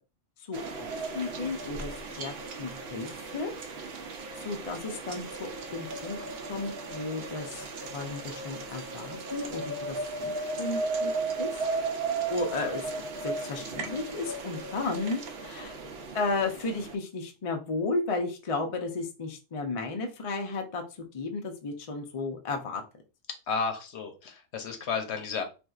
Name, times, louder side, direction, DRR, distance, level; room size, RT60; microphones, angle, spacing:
voice 1, 0.5-3.5 4.4-11.1 11.4-11.5 12.3-12.8 13.2-15.8 16.1-20.8 21.1-22.8, left 3 dB, 45° left, 3 dB, 0.4 m, -34 dB
sound 1, 0.5-17.0, right 3 dB, 65° right, 0.7 m, -36 dB
voice 2, 23.5-25.4, left 5 dB, 65° left, 6 dB, 0.9 m, -32 dB
4.0 x 2.5 x 2.3 m, 0.31 s
omnidirectional pair, 1.3 m